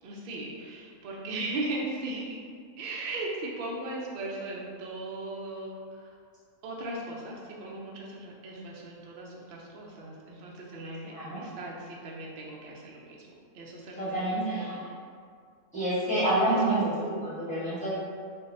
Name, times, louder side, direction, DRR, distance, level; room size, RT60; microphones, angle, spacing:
voice 1, 0.0-2.4 2.8-6.2 6.6-13.3 13.5-14.3 14.7-15.0 16.3-16.8, right 2 dB, 65° right, -2 dB, 0.6 m, -38 dB
voice 2, 11.1-11.4 14.0-14.8 15.7-17.9, right 1 dB, 5° left, -13 dB, 0.9 m, -28 dB
3.4 x 2.0 x 2.5 m, 2.1 s
omnidirectional pair, 1.4 m